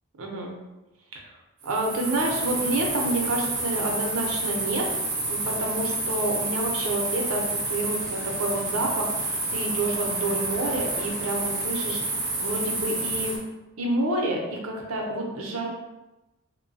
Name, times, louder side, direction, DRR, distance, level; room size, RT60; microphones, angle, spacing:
voice 1, 0.2-0.5 1.1-1.2 1.6-5.0 5.3-13.4 13.8-15.7, right 2 dB, 85° right, 0 dB, 0.6 m, -29 dB
sound 1, 1.6-13.4, right 2 dB, 45° right, 0.7 m, -29 dB
3.0 x 2.2 x 2.6 m, 0.99 s
head